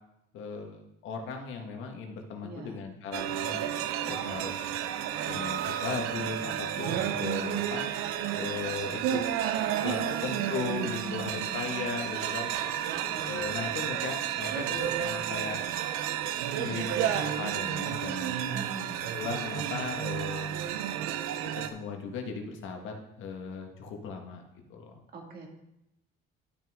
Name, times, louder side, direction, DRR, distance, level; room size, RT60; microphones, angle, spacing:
voice 1, 0.3-3.7 4.1-4.7 5.3-7.9 8.3-9.2 9.8-12.5 13.3-15.6 16.5-18.3 19.1-20.7 21.6-24.4 24.7-24.9, left 5 dB, 65° left, 3 dB, 1.6 m, -37 dB
voice 2, 2.4-2.8 6.7-7.4 9.6-11.5 12.8-13.4 18.5-19.1 25.1-25.5, right 2 dB, 45° right, 1 dB, 2.1 m, -43 dB
sound 1, 3.1-21.7, right 10 dB, 90° right, 0.7 m, -31 dB
12.0 x 6.2 x 3.7 m, 0.83 s
cardioid pair, 150°, 21 cm